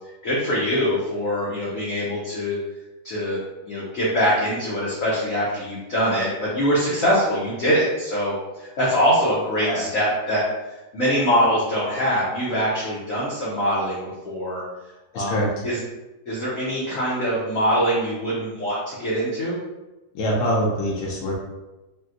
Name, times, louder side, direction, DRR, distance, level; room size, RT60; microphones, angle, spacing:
voice 1, 0.2-2.6 3.0-14.6 15.1-15.8 16.3-19.6, equal, 60° left, -7 dB, 0.9 m, -23 dB
voice 2, 15.1-15.5 20.1-21.4, equal, 85° left, -4 dB, 1.4 m, -24 dB
4.1 x 2.2 x 2.4 m, 1.1 s
omnidirectional pair, 2.1 m